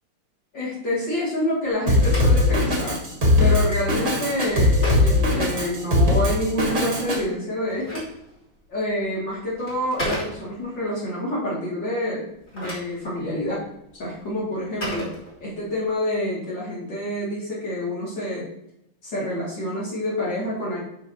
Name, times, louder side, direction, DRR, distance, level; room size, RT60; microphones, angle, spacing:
voice 1, 0.5-3.0 3.4-8.1 8.7-12.2 12.5-13.6 14.0-15.1 15.4-18.5 19.0-20.8, left 1 dB, 55° left, -7 dB, 3.1 m, -27 dB
Telephone, 1.7-6.2 7.4-10.8 12.3-15.8, left 1 dB, 35° left, 3.5 m, -37 dB
Drum kit, 1.9-7.2, left 2 dB, 35° right, 1.9 m, -19 dB
12.0 x 5.1 x 2.8 m, 0.81 s
omnidirectional pair, 2.4 m